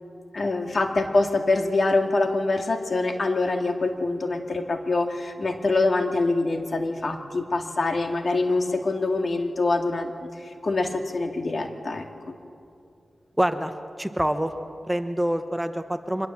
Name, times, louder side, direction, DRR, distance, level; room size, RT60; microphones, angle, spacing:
voice 1, 0.3-12.3, left 2 dB, 55° left, 4 dB, 2.1 m, -25 dB
voice 2, 13.4-13.7 14.0-14.5 14.9-16.3, right 1 dB, 10° right, 8 dB, 1.1 m, -25 dB
24.5 x 20.5 x 7.4 m, 2.5 s
cardioid pair, 65°, 0 cm